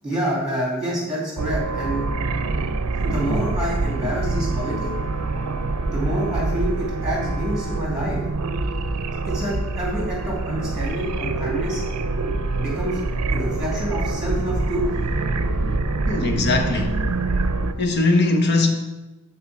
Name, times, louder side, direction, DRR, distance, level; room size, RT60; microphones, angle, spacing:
voice 1, 0.0-2.0 3.0-5.0 5.8-8.2 8.5-8.6 9.2-11.8 12.6-13.0 13.3-14.9, right 1 dB, 5° right, 2.4 m, -27 dB
sound 1, 1.4-17.7, right 3 dB, 85° right, 0.5 m, -25 dB
voice 2, 16.1-17.1 17.8-18.7, left 2 dB, 50° left, 0.9 m, -20 dB
9.2 x 4.3 x 4.5 m
head